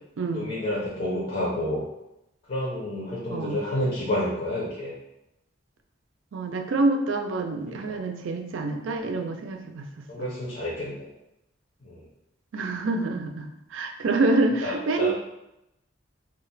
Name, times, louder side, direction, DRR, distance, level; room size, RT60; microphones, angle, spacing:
voice 1, 0.3-1.8 2.5-5.0 7.7-8.0 10.1-11.1 11.8-12.0 14.6-15.1, left 1 dB, 50° left, -7 dB, 0.7 m, -29 dB
voice 2, 3.3-3.6 6.3-9.9 10.2-10.3 12.5-15.1, right 3 dB, 75° right, 5 dB, 0.4 m, -26 dB
2.4 x 2.1 x 3.9 m, 0.87 s
head